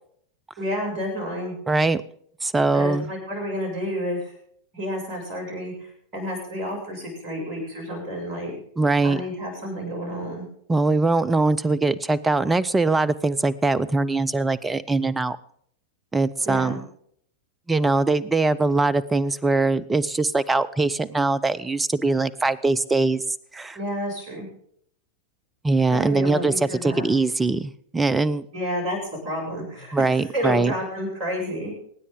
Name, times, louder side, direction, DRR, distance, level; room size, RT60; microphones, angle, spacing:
voice 1, 0.6-1.6 2.7-4.3 4.7-8.6 9.0-10.5 16.4-16.8 23.8-24.5 25.9-27.1 28.5-31.7, equal, 35° right, -1 dB, 7.1 m, -30 dB
voice 2, 1.7-2.0 2.4-3.1 8.8-9.2 10.7-15.4 16.1-16.8 17.7-23.2 23.5-23.8 25.6-28.5 29.9-30.7, right 3 dB, 10° right, 18 dB, 0.6 m, -22 dB
24.5 x 9.7 x 3.8 m, 0.65 s
figure-of-eight pair, 90°, 0 cm